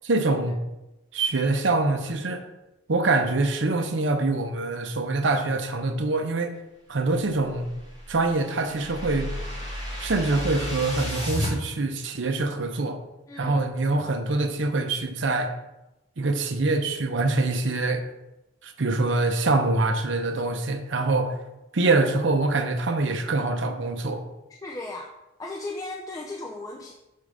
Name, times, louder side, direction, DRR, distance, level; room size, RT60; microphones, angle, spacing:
voice 1, 0.1-0.6 1.1-2.5 2.9-6.5 6.9-7.7 8.1-9.3 10.0-13.0 13.4-15.5 16.2-18.1 18.6-21.4 21.7-24.2, right 3 dB, 65° right, 7 dB, 0.6 m, -24 dB
sound 1, 7.5-11.5, equal, 20° right, 1.3 m, -33 dB
voice 2, 13.3-13.7 24.6-25.1 25.4-26.9, left 2 dB, 15° left, -1 dB, 0.4 m, -36 dB
6.4 x 3.7 x 4.8 m, 0.97 s
head